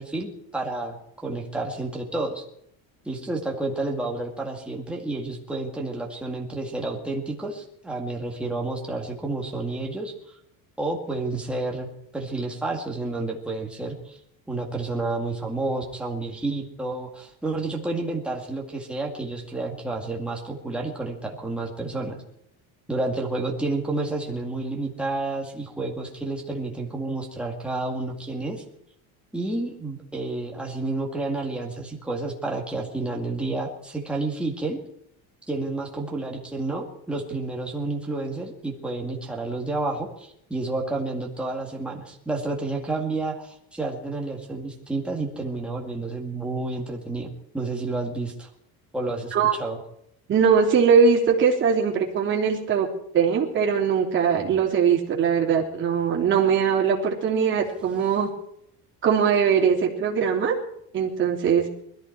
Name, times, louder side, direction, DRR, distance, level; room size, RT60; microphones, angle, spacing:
voice 1, 0.0-2.4 3.1-10.1 10.8-11.9 12.1-14.2 14.5-22.2 22.9-28.6 29.3-34.8 35.5-48.5 48.9-49.8, right 2 dB, 5° right, -1 dB, 2.2 m, -30 dB
voice 2, 50.3-52.9 53.1-58.3 59.0-60.5 60.9-61.7, right 6 dB, 30° right, -1 dB, 3.2 m, -21 dB
21.0 x 14.5 x 4.7 m, 0.71 s
cardioid pair, 180°, 38 cm